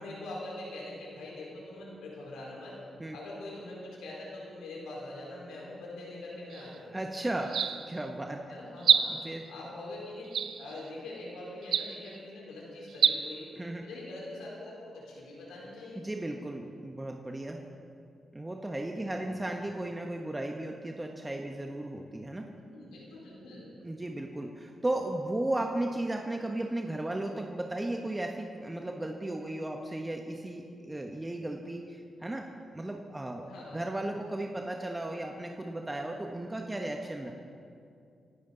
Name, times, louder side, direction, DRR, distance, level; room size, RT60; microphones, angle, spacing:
voice 1, 0.0-2.8 3.1-7.0 8.5-9.1 9.5-10.2 10.6-13.5 13.8-16.0 19.0-19.3 22.7-23.7 33.5-33.8, left 2 dB, 80° left, -4 dB, 4.8 m, -43 dB
sound 1, 6.5-6.8 7.4-8.0 8.8-9.4 10.3-10.9 11.6-12.2 12.9-13.2, right 8 dB, 70° right, 0.6 m, -27 dB
voice 2, 6.9-8.4 9.1-9.4 13.6-13.8 15.9-17.6 18.3-22.5 23.8-32.4 32.7-33.4 33.7-37.3, right 1 dB, 20° right, 2 dB, 1.4 m, -35 dB
26.0 x 12.0 x 4.1 m, 2.4 s
hypercardioid pair, 40°, 0 cm